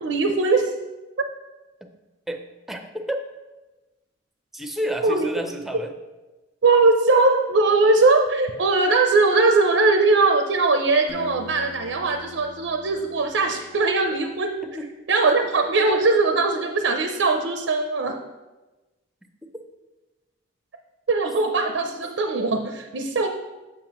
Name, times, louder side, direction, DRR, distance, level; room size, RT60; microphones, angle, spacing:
voice 1, 0.0-0.7 5.0-5.3 6.6-14.6 15.1-18.2 21.1-23.3, right 3 dB, 85° right, 5 dB, 0.5 m, -20 dB
voice 2, 2.3-3.2 4.5-5.9 14.8-14.9, equal, ahead, 5 dB, 0.5 m, -30 dB
Acoustic guitar, 11.1-14.1, left 5 dB, 80° left, 0.8 m, -43 dB
7.3 x 6.9 x 3.0 m, 1.1 s
head